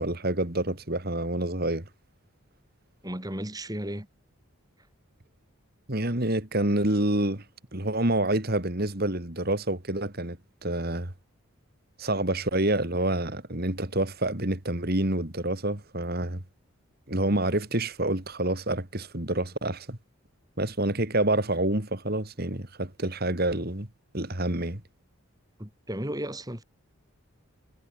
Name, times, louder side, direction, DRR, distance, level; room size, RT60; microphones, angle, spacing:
voice 1, 0.0-1.8 5.9-7.4 7.7-11.1 12.0-16.4 17.1-20.0 20.6-23.9 24.1-24.8, right 1 dB, 45° right, 2.9 m, -27 dB
voice 2, 3.0-4.1 25.6-26.6, equal, 15° right, 6.7 m, -34 dB
head